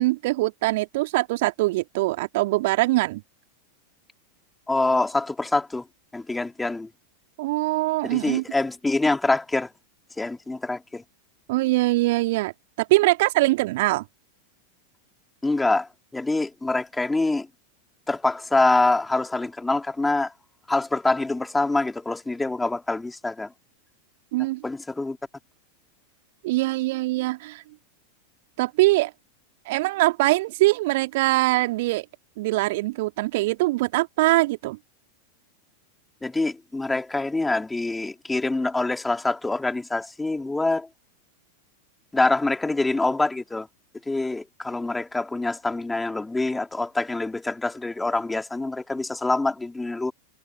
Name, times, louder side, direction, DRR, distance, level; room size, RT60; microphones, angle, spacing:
voice 1, 0.0-3.2 7.4-8.4 11.5-12.5 12.8-14.0 24.3-24.6 26.4-27.6 28.6-29.1 29.6-32.1 32.4-34.8, right 20 dB, 50° right, 3.1 m, -22 dB
voice 2, 4.7-5.8 6.1-6.9 8.0-9.7 10.2-11.0 15.4-17.5 18.1-20.3 20.7-23.5 24.6-25.2 36.2-40.9 42.1-43.7 44.1-50.1, left 2 dB, 10° left, 4.5 m, -25 dB
figure-of-eight pair, 90°, 0 cm